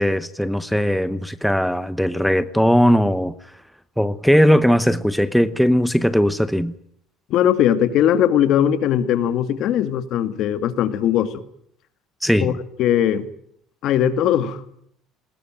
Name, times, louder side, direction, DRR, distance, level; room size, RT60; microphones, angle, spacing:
voice 1, 0.0-3.3 4.0-6.7 12.2-12.5, equal, ahead, 0.9 m, -18 dB
voice 2, 7.3-11.4 12.4-12.5 12.8-13.3 13.8-14.6, left 10 dB, 60° left, 2.3 m, -19 dB
21.0 x 20.0 x 9.1 m
cardioid pair, 125°, 0 cm